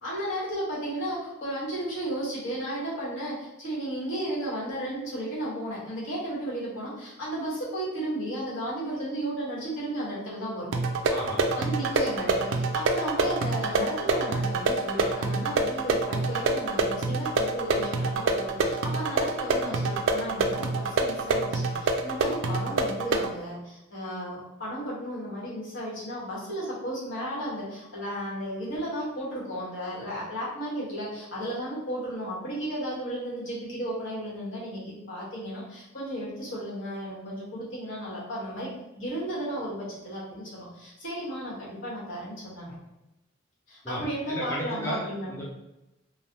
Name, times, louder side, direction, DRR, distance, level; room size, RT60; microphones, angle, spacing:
voice 1, 0.0-10.7 11.5-42.8 43.7-45.3, right 1 dB, 70° left, -7 dB, 1.2 m, -34 dB
sound 1, 10.7-23.3, right 3 dB, 70° right, 0.3 m, -26 dB
voice 2, 11.1-11.4 43.8-45.0 45.3-45.4, equal, 15° left, -6 dB, 0.5 m, -33 dB
3.1 x 2.0 x 2.7 m, 0.95 s
head